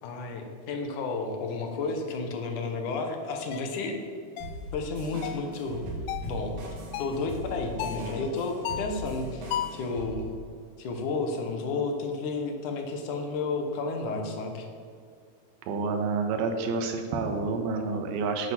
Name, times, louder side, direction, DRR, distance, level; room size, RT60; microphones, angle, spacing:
voice 1, 0.0-4.0 4.7-5.8 6.2-6.6 7.0-10.3 10.8-14.7, left 3 dB, 65° left, 4 dB, 2.4 m, -32 dB
sound 1, 3.5-3.7 4.4-4.6 5.2-5.5 6.1-6.3 6.9-7.2 7.8-8.1 8.7-9.0 9.5-9.9, left 11 dB, 80° left, 2.2 m, -34 dB
sound 2, 4.4-10.1, right 1 dB, 60° right, 3.1 m, -39 dB
voice 2, 15.6-18.5, right 4 dB, 80° right, 5 dB, 3.0 m, -29 dB
9.0 x 8.0 x 7.5 m, 2.2 s
omnidirectional pair, 4.3 m